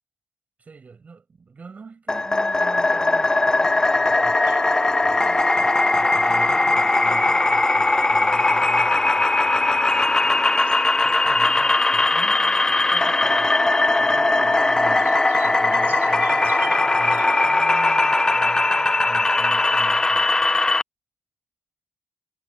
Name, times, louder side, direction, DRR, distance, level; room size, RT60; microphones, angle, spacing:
voice 1, 0.6-4.4 5.0-10.5 11.0-13.6 14.0-20.5, right 5 dB, 45° right, 7.6 m, -43 dB
sound 1, 2.1-20.8, left 2 dB, 20° left, 0.4 m, -19 dB
sound 2, 4.4-17.8, right 8 dB, 75° right, 2.1 m, -42 dB
cardioid pair, 80°, 4 cm